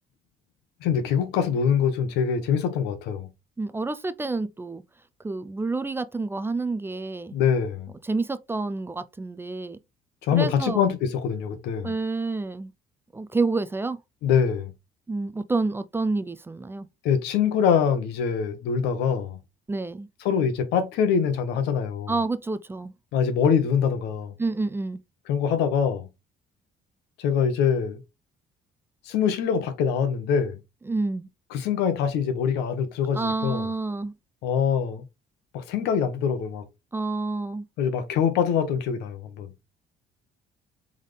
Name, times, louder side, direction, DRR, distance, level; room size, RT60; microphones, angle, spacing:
voice 1, 0.8-3.3 7.3-7.9 10.2-11.9 14.2-14.7 17.0-19.4 20.2-22.2 23.1-24.3 25.3-26.1 27.2-28.0 29.0-30.6 31.5-33.7 34.4-35.0 35.5-36.6 37.8-39.5, left 7 dB, 90° left, 1.1 m, -24 dB
voice 2, 3.6-4.8 5.2-7.4 8.0-9.8 10.3-10.9 11.8-12.7 13.1-14.0 15.1-16.9 19.7-20.1 22.1-22.9 24.4-25.0 30.9-31.3 33.1-34.1 36.9-37.6, right 3 dB, 15° right, 0.4 m, -28 dB
4.0 x 3.6 x 3.3 m
cardioid pair, 110°, 17 cm